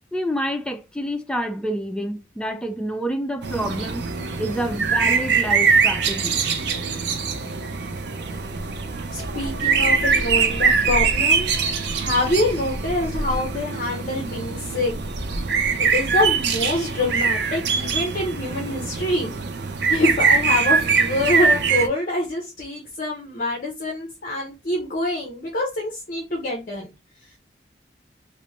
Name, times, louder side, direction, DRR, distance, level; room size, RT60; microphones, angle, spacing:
voice 1, 0.1-4.1 4.4-6.4, equal, 5° left, 0.3 m, -28 dB
sound 1, 3.4-21.9, right 5 dB, 75° right, 0.5 m, -23 dB
voice 2, 9.1-11.5 12.0-14.9 15.8-19.3 19.9-26.9, left 2 dB, 50° left, 0.6 m, -25 dB
2.9 x 2.0 x 3.0 m
head